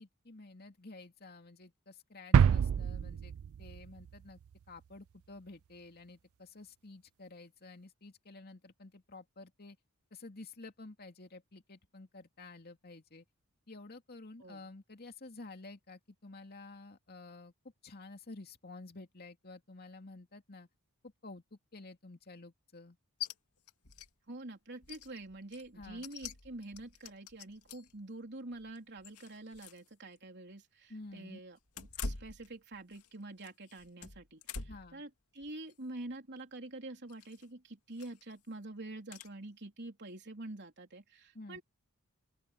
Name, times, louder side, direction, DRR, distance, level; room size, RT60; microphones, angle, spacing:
voice 1, 0.0-3.3 3.6-4.4 4.7-9.8 10.1-13.2 13.7-17.5 17.8-20.7 21.0-23.0 25.8-26.1 30.9-31.4 34.7-35.0 41.3-41.6, left 2 dB, 45° left, 2.6 m, -51 dB
sound 1, 2.3-4.2 4.5-4.6, right 7 dB, 65° right, 0.3 m, -27 dB
sound 2, 23.2-23.3 23.7-24.1 24.4-24.5 24.8-28.0 28.5-29.9 30.2-30.3 31.7-33.1 33.4-34.9 35.4-35.7 37.1-37.5 37.9-38.3 39.1-39.3, left 4 dB, 80° left, 2.2 m, -45 dB
voice 2, 24.3-41.6, right 2 dB, 50° right, 3.5 m, -47 dB
open air
head